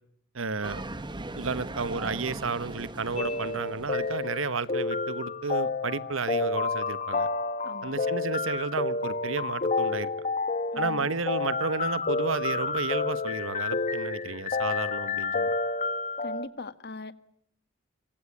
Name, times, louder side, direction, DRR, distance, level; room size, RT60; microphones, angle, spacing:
voice 1, 0.3-0.8 1.4-7.3 7.8-10.1 10.7-15.5, right 4 dB, 75° right, 1.2 m, -32 dB
sound 1, 0.6-4.6, right 2 dB, 25° right, 1.8 m, -39 dB
sound 2, 3.2-16.5, left 3 dB, 40° left, 1.5 m, -30 dB
voice 2, 7.6-7.9 10.7-11.1 16.2-17.1, left 3 dB, 55° left, 1.7 m, -40 dB
26.5 x 23.5 x 8.8 m
head